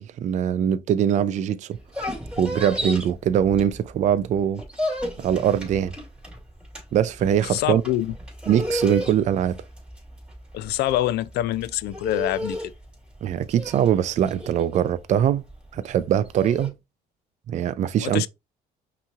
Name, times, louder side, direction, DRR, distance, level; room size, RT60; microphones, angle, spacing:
voice 1, 0.0-1.8 2.4-4.6 5.2-5.9 6.9-7.8 8.5-9.6 13.2-15.4 15.7-16.7 17.5-18.3, right 9 dB, 45° right, 0.4 m, -22 dB
sound 1, 1.7-4.1 4.4-16.7, left 1 dB, 5° right, 2.5 m, -33 dB
voice 2, 7.4-8.1 10.5-12.6 18.0-18.3, left 14 dB, 75° left, 0.4 m, -25 dB
5.6 x 2.9 x 2.4 m
cardioid pair, 110°, 17 cm